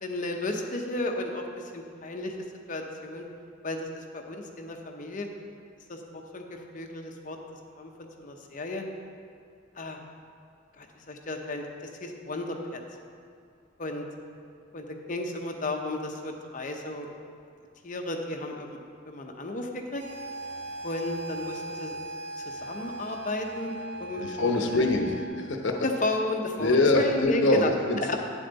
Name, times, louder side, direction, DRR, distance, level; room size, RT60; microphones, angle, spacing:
voice 1, 0.0-2.3 2.7-3.2 3.6-5.3 5.9-7.4 7.8-8.8 9.8-10.0 10.8-11.6 12.0-12.8 13.8-14.0 14.7-17.1 17.8-18.7 19.1-20.0 20.8-22.0 22.4-24.8 25.8-27.7 28.0-28.2, left 2 dB, 40° left, 3 dB, 0.8 m, -33 dB
sound 1, 20.0-25.3, right 2 dB, 80° right, 1.6 m, -39 dB
voice 2, 24.2-25.8 26.6-28.2, left 2 dB, 65° left, 3 dB, 0.9 m, -24 dB
9.5 x 7.2 x 4.0 m, 2.4 s
head